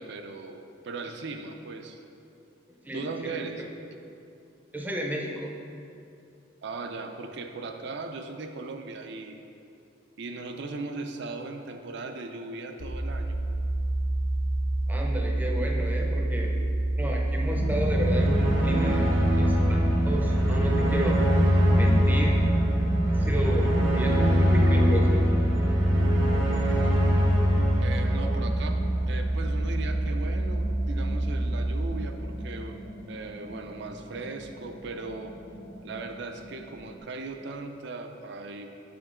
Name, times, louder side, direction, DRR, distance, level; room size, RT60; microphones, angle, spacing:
voice 1, 0.0-2.0 2.9-3.6 6.6-9.4 10.2-13.4 27.8-32.8 33.1-35.3 35.8-38.7, right 3 dB, 65° right, 5 dB, 0.5 m, -38 dB
voice 2, 2.8-3.7 4.7-5.5 14.9-16.6 17.0-19.1 19.4-21.3 21.7-22.5 23.1-25.3, equal, 10° right, 0 dB, 0.6 m, -33 dB
sound 1, 12.8-31.9, right 1 dB, 60° left, 0.7 m, -28 dB
sound 2, 17.5-37.0, right 1 dB, 85° left, 1.0 m, -33 dB
sound 3, 17.6-28.9, equal, 80° right, 1.0 m, -24 dB
6.7 x 5.1 x 3.7 m, 2.6 s
head